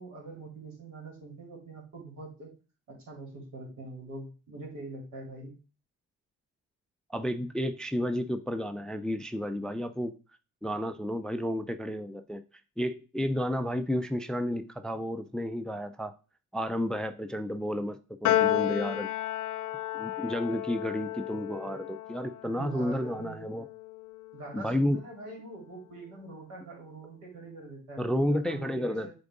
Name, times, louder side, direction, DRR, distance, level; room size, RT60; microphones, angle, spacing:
voice 1, 0.0-2.5 2.9-5.5 22.4-23.5 24.3-29.1, right 2 dB, 70° right, -1 dB, 3.5 m, -44 dB
voice 2, 7.1-10.1 10.6-12.4 12.8-16.1 16.5-19.1 19.9-23.7 24.5-25.0 28.0-29.1, equal, ahead, 10 dB, 0.4 m, -31 dB
Piano, 18.2-24.8, left 13 dB, 75° left, 0.6 m, -32 dB
7.1 x 3.9 x 3.7 m, 0.34 s
cardioid pair, 90°, 30 cm